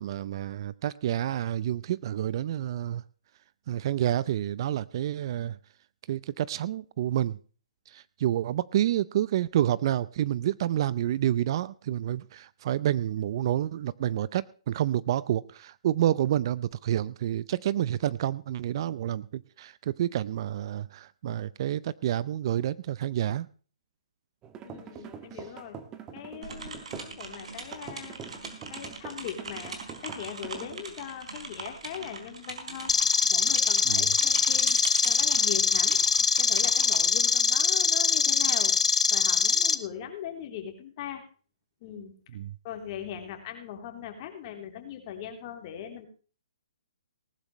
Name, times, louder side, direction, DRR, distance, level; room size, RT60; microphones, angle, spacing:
voice 1, 0.0-3.0 3.7-5.6 6.1-7.4 7.9-23.5 33.9-34.1 42.3-42.5, right 12 dB, 45° right, 20 dB, 0.6 m, -29 dB
sound 1, 24.4-27.2 27.7-30.8, right 7 dB, 20° right, 1.6 m, -44 dB
voice 2, 24.6-25.8 26.1-33.0 33.3-36.0 36.4-38.8 39.1-41.2 41.8-42.1 42.6-46.1, left 9 dB, 35° left, 4 dB, 3.5 m, -40 dB
sound 2, 26.4-38.0, right 4 dB, 70° right, 4.2 m, -41 dB
sound 3, 32.9-39.7, left 5 dB, 80° left, 1.4 m, -23 dB
19.0 x 12.0 x 3.2 m, 0.40 s
hypercardioid pair, 145°, 4 cm